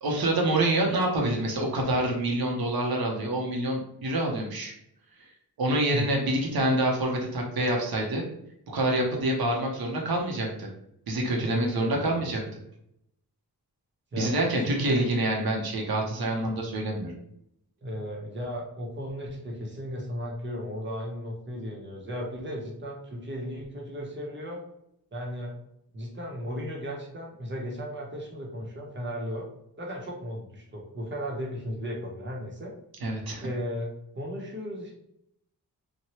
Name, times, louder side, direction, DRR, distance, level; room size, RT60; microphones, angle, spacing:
voice 1, 0.0-4.7 5.6-8.2 8.7-10.7 11.1-12.4 14.2-17.1 33.0-33.5, right 1 dB, 75° right, 0 dB, 0.8 m, -26 dB
voice 2, 11.3-12.3 14.1-15.0 16.4-16.5 17.8-24.6 25.1-25.6 25.9-29.5 29.8-32.7 33.4-34.9, equal, 30° right, -1 dB, 0.8 m, -35 dB
2.9 x 2.2 x 3.0 m, 0.76 s
wide cardioid pair, 90°, 37 cm